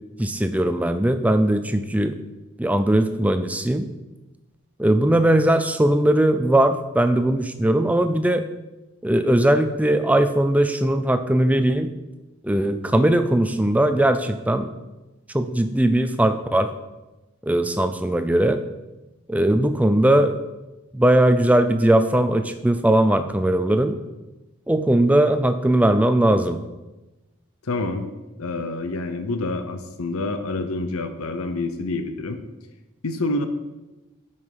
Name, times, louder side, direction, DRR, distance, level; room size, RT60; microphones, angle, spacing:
voice 1, 0.2-2.2 2.6-3.9 4.8-8.5 9.0-11.9 12.4-14.7 15.3-16.7 17.4-18.6 19.3-20.4 20.9-24.0 24.7-26.6, right 1 dB, 5° right, 9 dB, 0.4 m, -19 dB
voice 2, 27.6-28.1 28.4-32.4 33.0-33.5, left 2 dB, 90° left, 8 dB, 0.8 m, -27 dB
9.5 x 5.7 x 4.8 m, 1.1 s
head